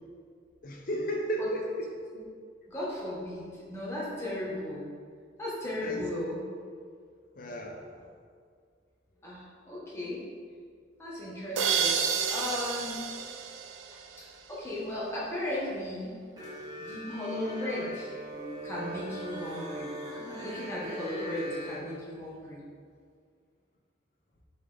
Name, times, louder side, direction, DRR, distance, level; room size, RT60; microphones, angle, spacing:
voice 1, 0.6-1.9 5.8-6.4 7.4-8.1, right 1 dB, 45° left, 1 dB, 0.6 m, -34 dB
voice 2, 2.7-4.8 5.4-6.4 9.2-10.2 11.0-13.0 14.2-16.1 16.8-18.1 18.6-19.9 20.4-22.6, left 1 dB, 15° left, -7 dB, 1.4 m, -36 dB
sound 1, 11.6-14.4, right 6 dB, 90° right, 0.5 m, -30 dB
sound 2, 16.4-21.8, equal, 20° right, 1.3 m, -39 dB
7.9 x 3.8 x 3.5 m, 2.1 s
head